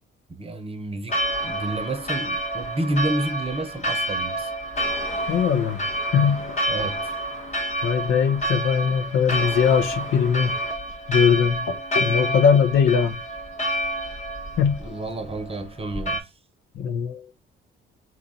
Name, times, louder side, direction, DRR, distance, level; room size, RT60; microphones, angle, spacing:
voice 1, 0.3-4.5 6.7-7.2 14.8-16.3, right 1 dB, 25° right, 0.8 m, -30 dB
Church bell, 1.1-16.2, right 1 dB, 35° left, 1.2 m, -29 dB
voice 2, 5.3-6.5 7.8-10.6 11.1-13.2 14.6-15.0 16.7-17.3, left 7 dB, 75° left, 0.8 m, -21 dB
4.1 x 2.4 x 4.1 m
cardioid pair, 85°, 21 cm